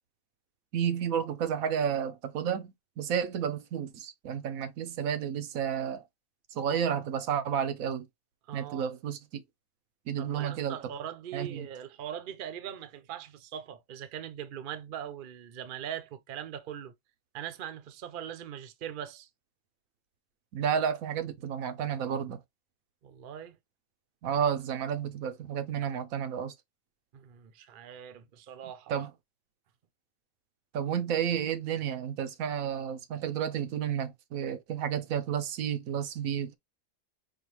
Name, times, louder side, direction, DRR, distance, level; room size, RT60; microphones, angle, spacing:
voice 1, 0.7-6.0 6.5-8.1 8.5-9.4 10.1-10.7 11.3-11.7 20.5-22.4 24.2-26.5 28.9-29.1 30.7-36.6, right 8 dB, 85° right, 1.1 m, -31 dB
voice 2, 8.5-8.9 10.2-16.9 17.3-19.3 23.0-23.6 27.1-28.9, right 9 dB, 50° right, 0.6 m, -41 dB
5.1 x 2.4 x 3.1 m
omnidirectional pair, 1.4 m